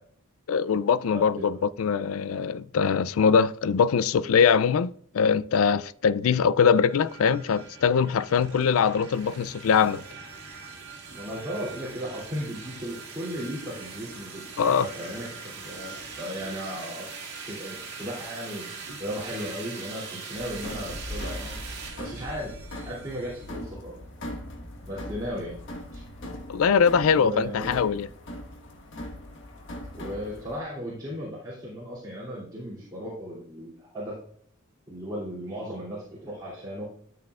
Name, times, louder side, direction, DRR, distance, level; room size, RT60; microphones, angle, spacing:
voice 1, 0.5-10.0 14.6-14.9 26.5-28.1, left 6 dB, 75° left, 0.4 m, -22 dB
voice 2, 1.1-1.6 11.1-17.1 17.4-18.7 19.0-21.6 22.0-22.6 22.8-23.9 24.9-25.6 25.9-26.0 27.1-27.7 29.9-34.2 34.9-36.9, equal, 20° right, 2.8 m, -36 dB
sound 1, 6.8-23.5, right 4 dB, 55° right, 2.2 m, -42 dB
sound 2, 20.3-30.6, left 1 dB, 60° left, 1.5 m, -40 dB
13.0 x 6.9 x 2.4 m
head